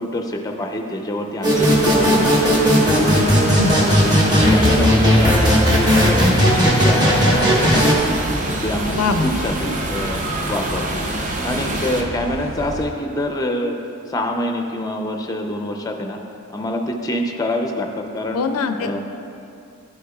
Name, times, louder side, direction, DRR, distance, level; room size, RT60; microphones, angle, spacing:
voice 1, 0.0-2.7 3.0-3.5 3.8-4.2 4.5-6.3 6.6-8.1 8.6-11.0 11.4-13.8 14.1-16.2 16.5-18.5 18.8-19.0, left 1 dB, 15° left, 3 dB, 0.5 m, -26 dB
sound 1, 1.4-7.9, equal, 20° right, 1.0 m, -15 dB
sound 2, 1.5-12.0, right 1 dB, 35° right, 0.6 m, -26 dB
sound 3, 5.0-12.9, equal, 65° right, 1.4 m, -33 dB
voice 2, 8.9-9.3 18.3-19.0, left 4 dB, 80° left, 8 dB, 0.4 m, -21 dB
11.5 x 6.4 x 2.3 m, 2.6 s
head